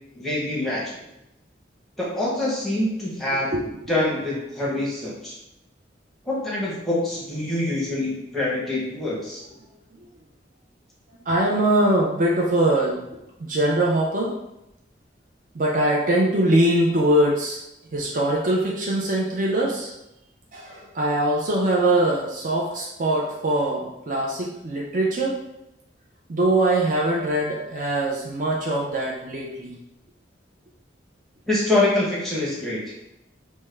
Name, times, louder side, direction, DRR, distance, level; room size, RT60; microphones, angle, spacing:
voice 1, 0.1-1.0 2.0-3.5 3.9-5.4 6.3-9.4 31.5-32.8, left 2 dB, ahead, -6 dB, 0.8 m, -25 dB
voice 2, 11.3-13.0 13.4-14.3 15.5-17.6 17.9-19.9 20.5-25.4 26.3-29.7, right 1 dB, 45° right, -2 dB, 0.4 m, -22 dB
3.4 x 2.1 x 3.2 m, 0.88 s
head